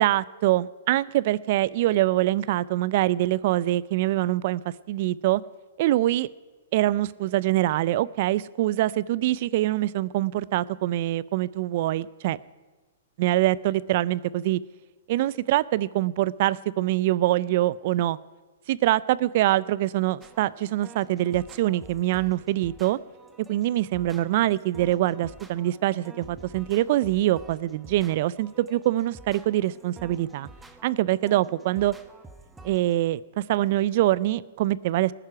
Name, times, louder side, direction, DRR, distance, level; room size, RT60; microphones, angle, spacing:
voice 1, 0.0-4.6 4.9-5.4 5.8-6.3 6.7-12.4 13.2-14.6 15.1-18.2 18.7-23.0 23.5-30.5 30.8-31.9 32.6-35.1, right 15 dB, 50° right, 20 dB, 0.4 m, -24 dB
sound 1, 20.2-32.9, right 2 dB, 10° right, 0.9 m, -49 dB
19.0 x 9.9 x 5.7 m, 1.3 s
hypercardioid pair, 145°, 0 cm